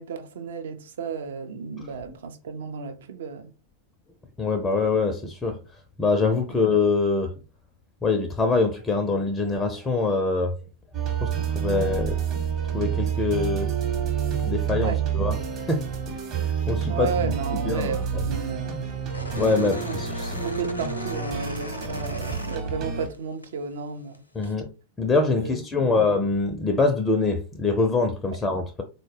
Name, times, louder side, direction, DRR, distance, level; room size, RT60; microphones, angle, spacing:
voice 1, 0.0-3.5 6.5-6.6 14.8-15.1 16.9-18.9 19.8-20.0 20.4-24.5 25.4-26.1 28.3-28.4, right 5 dB, 60° right, 0.5 m, -33 dB
voice 2, 4.4-5.6 6.0-7.3 8.0-10.5 11.2-12.2 12.7-13.7 14.4-15.4 15.7-15.8 16.4-17.3 17.7-17.9 19.3-20.3 24.4-24.7 25.0-28.8, left 3 dB, 15° left, 0.4 m, -24 dB
sound 1, 10.9-23.1, right 7 dB, 35° right, 0.9 m, -28 dB
sound 2, 19.1-23.2 23.4-24.5, left 1 dB, 80° left, 0.6 m, -38 dB
3.8 x 2.1 x 3.2 m
figure-of-eight pair, 90°, 0 cm